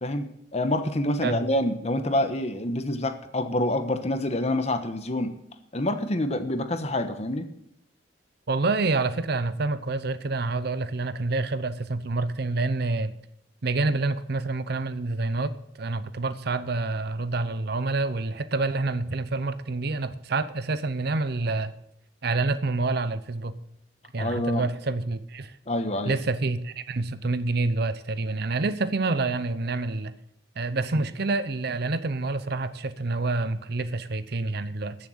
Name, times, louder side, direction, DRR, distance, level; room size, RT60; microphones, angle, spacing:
voice 1, 0.0-5.3 5.7-7.5 24.2-24.7 25.7-26.1, left 1 dB, 35° left, 1.1 m, -27 dB
voice 2, 8.5-13.1 13.6-15.5 15.8-21.7 22.2-23.5 24.1-25.5 26.1-30.1 30.6-35.0, right 3 dB, 60° right, 0.7 m, -27 dB
14.0 x 7.1 x 7.2 m
head